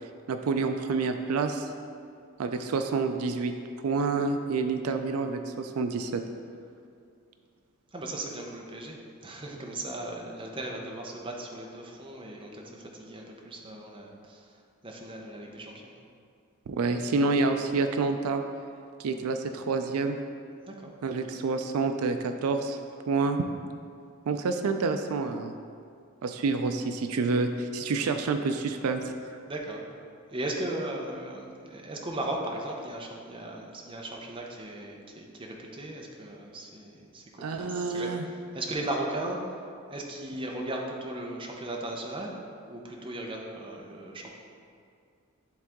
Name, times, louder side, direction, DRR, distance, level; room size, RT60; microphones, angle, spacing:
voice 1, 0.3-1.7 2.4-3.5 3.8-6.2 16.7-18.4 19.0-20.2 21.0-22.8 23.1-23.5 24.3-25.5 26.2-29.3 37.4-38.3, right 4 dB, 85° right, 7 dB, 0.4 m, -28 dB
voice 2, 7.9-14.6 14.8-16.0 20.7-20.9 29.5-29.9 30.3-38.1 38.5-42.3 42.7-44.3, right 1 dB, 25° right, 0 dB, 0.7 m, -37 dB
10.5 x 3.8 x 3.6 m, 2.3 s
head